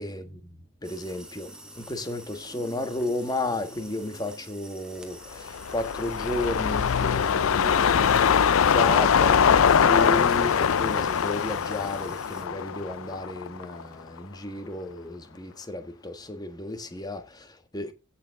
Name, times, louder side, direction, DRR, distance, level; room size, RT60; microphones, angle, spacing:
voice 1, 0.0-17.9, left 1 dB, 20° left, 1.5 m, -33 dB
sound 1, 0.8-12.4, right 1 dB, 5° right, 2.6 m, -48 dB
sound 2, 5.4-13.8 14.2-14.3, left 7 dB, 85° left, 0.5 m, -22 dB
16.5 x 7.2 x 3.7 m
head